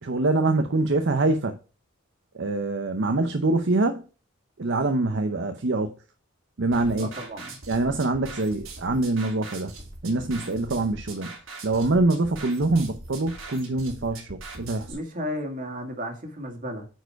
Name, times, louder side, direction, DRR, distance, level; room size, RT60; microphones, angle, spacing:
voice 1, 0.0-1.6 2.3-4.0 4.6-5.9 6.6-7.1 7.7-9.7 10.0-11.4 11.6-14.9, right 2 dB, 60° right, 0.7 m, -24 dB
sound 1, 6.7-14.9, right 3 dB, 80° right, 2.9 m, -42 dB
voice 2, 7.0-7.6 14.9-16.9, equal, 40° right, 2.0 m, -34 dB
9.2 x 4.6 x 4.6 m
head